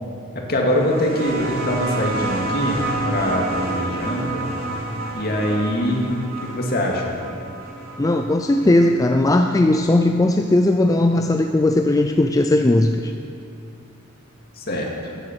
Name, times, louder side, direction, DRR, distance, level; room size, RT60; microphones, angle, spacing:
voice 1, 0.3-4.5 5.1-6.0 6.4-7.1 14.6-15.1, left 1 dB, 50° left, -1 dB, 2.3 m, -23 dB
sound 1, 0.7-9.9 11.1-11.2, right 2 dB, 45° right, 2.7 m, -29 dB
voice 2, 8.0-13.1, left 1 dB, 15° left, 5 dB, 0.4 m, -17 dB
15.0 x 10.5 x 6.2 m, 2.5 s
head